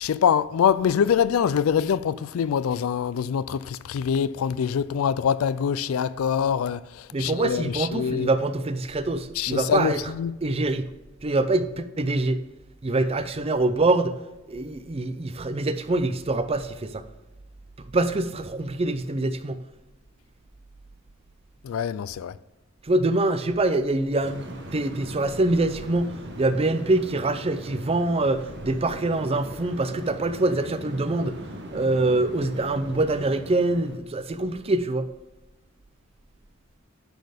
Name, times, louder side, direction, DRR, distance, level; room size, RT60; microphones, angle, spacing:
voice 1, 0.0-8.3 9.4-10.4 21.6-22.3, left 7 dB, 85° left, 0.4 m, -24 dB
voice 2, 7.1-10.1 10.4-10.9 11.2-12.4 12.8-14.2 14.5-17.0 17.9-19.6 22.8-31.4 31.7-35.1, right 2 dB, 30° right, 0.5 m, -25 dB
sound 1, 24.2-34.0, right 1 dB, 55° right, 1.2 m, -40 dB
10.5 x 4.2 x 5.0 m
head